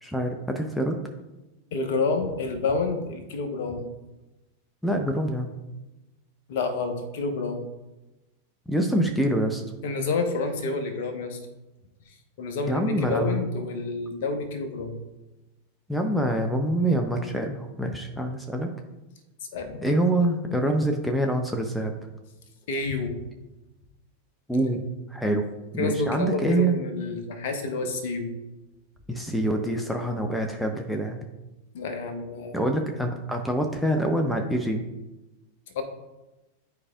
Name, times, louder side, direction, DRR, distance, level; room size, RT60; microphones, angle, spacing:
voice 1, 0.0-1.0 4.8-5.5 8.7-9.6 12.7-13.4 15.9-18.7 19.8-21.9 24.5-24.8 25.1-25.5 25.7-26.8 29.1-31.2 32.5-34.8, right 1 dB, ahead, 3 dB, 0.6 m, -25 dB
voice 2, 1.7-3.9 6.5-7.6 9.8-11.4 12.1-15.0 19.5-19.9 22.7-23.2 25.8-28.3 31.7-32.6 35.7-35.8, left 3 dB, 50° left, 5 dB, 1.1 m, -29 dB
11.0 x 4.8 x 2.4 m, 1.0 s
figure-of-eight pair, 90°, 0 cm